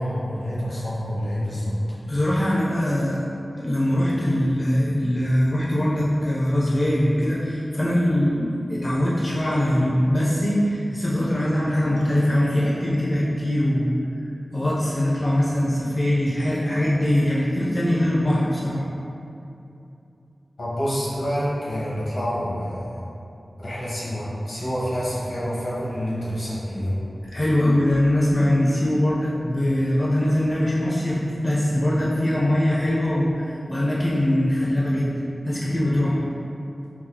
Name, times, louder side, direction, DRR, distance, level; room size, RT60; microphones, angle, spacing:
voice 1, 0.0-2.0 20.6-22.9 23.6-27.0, equal, 75° left, -8 dB, 1.0 m, -27 dB
voice 2, 2.1-3.3 3.5-13.9 14.5-18.9 27.3-36.2, left 1 dB, 25° left, -6 dB, 0.4 m, -22 dB
4.0 x 2.4 x 2.7 m, 2.7 s
wide cardioid pair, 85°, 0 cm